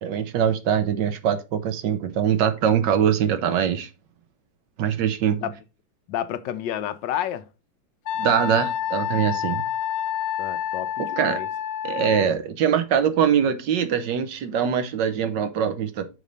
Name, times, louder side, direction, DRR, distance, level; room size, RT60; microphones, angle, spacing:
voice 1, 0.0-3.9 4.8-5.4 8.2-9.6 11.0-11.4 11.8-16.1, right 8 dB, 75° right, 1.5 m, -23 dB
voice 2, 6.1-7.5 10.4-11.5 12.2-12.3, left 11 dB, 85° left, 1.3 m, -30 dB
Wind instrument woodwind instrument, 8.1-12.3, left 10 dB, 65° left, 0.9 m, -28 dB
6.4 x 4.1 x 5.1 m
omnidirectional pair, 1.9 m